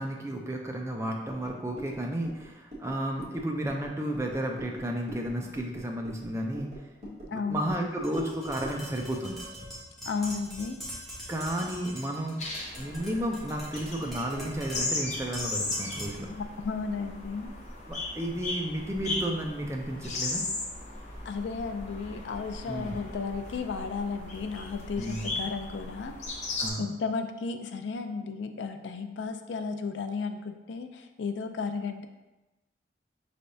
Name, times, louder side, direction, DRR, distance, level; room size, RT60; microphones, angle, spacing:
voice 1, 0.0-6.9 7.3-9.4 11.3-12.4 12.7-16.3 17.9-20.4 22.7-23.0 25.0-25.4 26.6-27.0, right 1 dB, 15° right, 1 dB, 0.4 m, -33 dB
sound 1, 1.3-8.9, right 1 dB, 35° right, 1.3 m, -45 dB
voice 2, 7.0-7.6 10.1-10.8 16.4-17.6 21.2-26.2 26.8-32.1, left 4 dB, 85° left, 8 dB, 0.4 m, -34 dB
Tap, 8.0-16.3, equal, ahead, 0.9 m, -43 dB
sound 2, 12.4-26.7, left 2 dB, 40° left, 0.7 m, -37 dB
5.5 x 3.3 x 2.6 m, 1.0 s
head